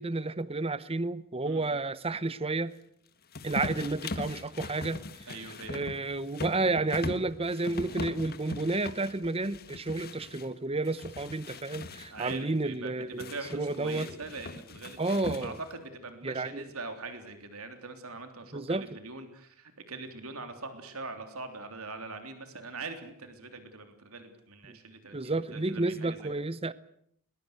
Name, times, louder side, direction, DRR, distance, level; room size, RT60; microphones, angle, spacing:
voice 1, 0.0-2.7 3.4-5.0 5.7-14.1 15.0-15.6 16.2-16.7 18.5-18.9 24.7-24.8 25.1-26.7, right 2 dB, 25° right, 0.9 m, -31 dB
voice 2, 1.5-1.8 5.3-5.8 12.1-15.0 15.4-26.3, right 3 dB, 85° right, 3.4 m, -42 dB
sound 1, 3.3-10.5 10.8-12.4 13.2-15.8, left 2 dB, 45° left, 1.6 m, -40 dB
21.5 x 21.5 x 8.1 m
head